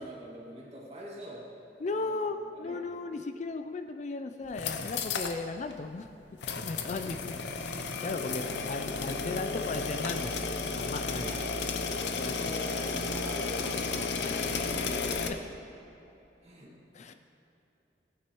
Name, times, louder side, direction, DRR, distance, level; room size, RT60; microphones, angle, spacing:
voice 1, 0.0-1.5 1.9-2.2 2.5-2.8 7.0-7.2 9.0-9.1 11.1-11.7 12.2-14.6 16.4-16.8, equal, 35° right, -4 dB, 2.0 m, -45 dB
voice 2, 1.8-6.1 6.6-7.4 7.6-10.4 10.8-11.3 12.1-12.4 14.2-15.4 16.9-17.1, left 3 dB, 40° left, 7 dB, 0.4 m, -36 dB
sound 1, 4.4-5.4 5.7-5.8 6.4-15.3, left 4 dB, 75° left, 0.7 m, -33 dB
16.0 x 9.1 x 3.1 m, 3.0 s
head